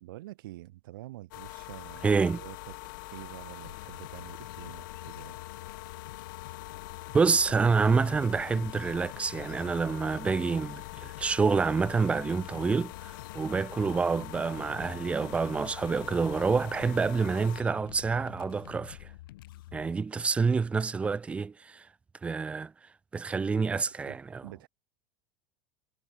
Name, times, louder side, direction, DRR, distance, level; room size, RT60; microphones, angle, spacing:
voice 1, 0.0-2.7 3.1-5.4 24.1-24.7, right 17 dB, 85° right, 6.0 m, -47 dB
sound 1, 1.3-17.6, left 21 dB, 70° left, 4.8 m, -44 dB
voice 2, 2.0-2.4 7.1-19.1 19.7-21.9 22.2-22.7 23.1-24.4, right 5 dB, 10° right, 0.5 m, -27 dB
sound 2, 3.6-19.9, left 16 dB, 85° left, 6.5 m, -48 dB
supercardioid pair, 160°, 11 cm